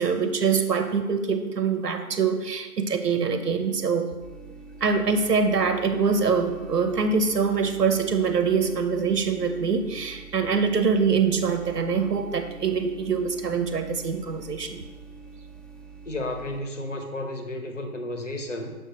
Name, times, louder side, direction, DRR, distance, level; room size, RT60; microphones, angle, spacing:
voice 1, 0.0-4.1 4.8-14.8, right 5 dB, 85° right, 8 dB, 0.9 m, -24 dB
sound 1, 4.2-16.6, right 4 dB, ahead, 0.4 m, -45 dB
voice 2, 16.1-18.7, left 1 dB, 50° left, 4 dB, 0.9 m, -32 dB
6.9 x 5.4 x 3.0 m, 1.3 s
figure-of-eight pair, 175°, 47 cm